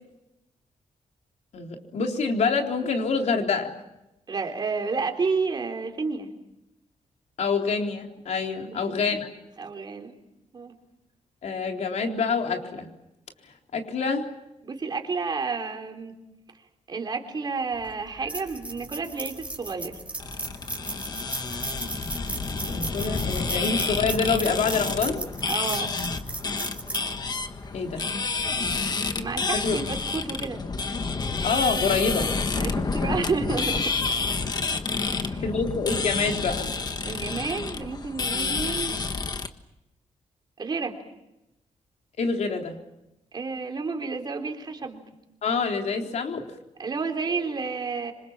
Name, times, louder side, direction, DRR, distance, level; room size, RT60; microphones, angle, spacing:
voice 1, 1.5-3.7 7.4-9.3 11.4-12.9 13.7-14.3 22.7-25.3 27.7-28.1 29.5-29.8 31.4-32.3 35.4-36.7 42.2-42.8 45.4-46.5, left 4 dB, 65° left, 3 dB, 3.9 m, -26 dB
voice 2, 4.3-6.3 8.6-9.0 9.6-10.1 10.5-10.7 14.6-16.1 16.9-20.0 25.5-25.9 29.2-30.6 32.6-33.9 35.0-35.4 37.0-38.9 40.6-41.0 43.3-45.0 46.8-48.1, right 4 dB, 35° right, 4 dB, 3.6 m, -30 dB
sound 1, 17.7-28.2, right 2 dB, 10° right, 4.5 m, -37 dB
sound 2, 20.2-39.5, left 4 dB, 35° left, 1.4 m, -29 dB
26.5 x 26.0 x 7.4 m, 0.90 s
wide cardioid pair, 150°, 13 cm